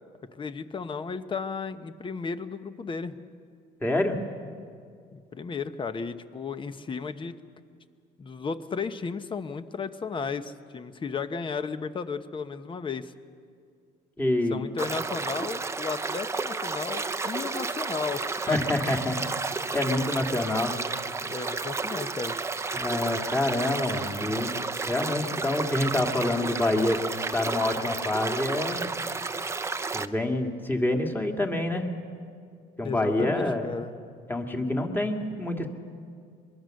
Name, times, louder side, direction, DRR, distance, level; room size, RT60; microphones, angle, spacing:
voice 1, 0.3-3.2 5.1-7.3 8.2-13.1 14.5-18.6 21.2-22.4 32.8-34.0, left 5 dB, 30° left, 11 dB, 1.0 m, -34 dB
voice 2, 3.8-4.2 14.2-14.7 18.5-19.3 19.7-20.7 22.7-24.6 24.9-27.0 27.3-28.8 29.9-31.9 32.8-33.7 34.3-35.7, left 1 dB, 10° left, 3 dB, 2.1 m, -27 dB
sound 1, 14.8-30.0, right 3 dB, 15° right, 0.7 m, -32 dB
23.5 x 22.5 x 6.5 m, 2.3 s
cardioid pair, 110°, 17 cm